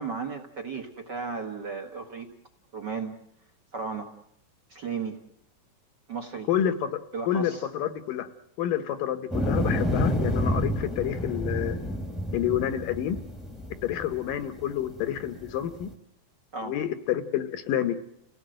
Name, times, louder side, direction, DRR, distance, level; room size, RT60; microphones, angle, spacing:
voice 1, 0.0-2.3 2.7-3.1 3.7-4.1 4.7-5.2 6.1-6.5 7.1-7.7 16.5-16.7, right 5 dB, 45° right, 4 dB, 1.5 m, -34 dB
voice 2, 6.5-6.9 7.3-8.3 8.6-11.8 12.3-13.2 13.8-15.9 16.6-18.0, left 10 dB, 70° left, 10 dB, 2.7 m, -28 dB
sound 1, 9.3-15.9, left 1 dB, ahead, 1.2 m, -29 dB
29.5 x 17.0 x 7.8 m, 0.79 s
omnidirectional pair, 4.1 m